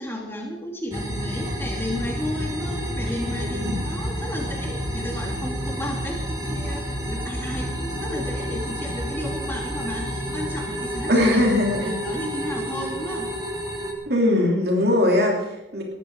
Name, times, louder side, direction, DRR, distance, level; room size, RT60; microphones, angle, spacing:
voice 1, 0.0-13.3, left 1 dB, 10° left, 0 dB, 2.8 m, -33 dB
sound 1, 0.9-13.9, equal, 20° right, 2.4 m, -29 dB
voice 2, 3.0-3.8 11.1-11.9 14.0-15.8, left 1 dB, 55° right, 0 dB, 3.0 m, -21 dB
19.0 x 13.5 x 4.8 m, 0.96 s
head